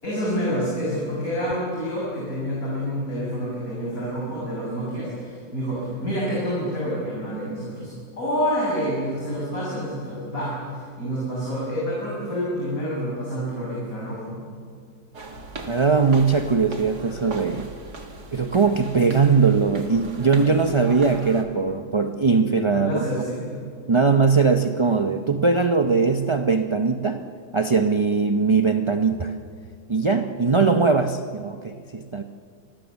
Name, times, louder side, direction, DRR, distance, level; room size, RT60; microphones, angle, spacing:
voice 1, 0.0-14.4 22.7-23.6, equal, 55° left, -5 dB, 6.6 m, -28 dB
sound 1, 15.1-21.4, right 2 dB, 70° right, 2.7 m, -37 dB
voice 2, 15.7-17.7 18.3-23.0 23.9-27.3 27.5-29.4 29.9-32.2, right 4 dB, 30° right, 6 dB, 0.5 m, -20 dB
28.0 x 22.0 x 7.2 m, 2.2 s
omnidirectional pair, 1.8 m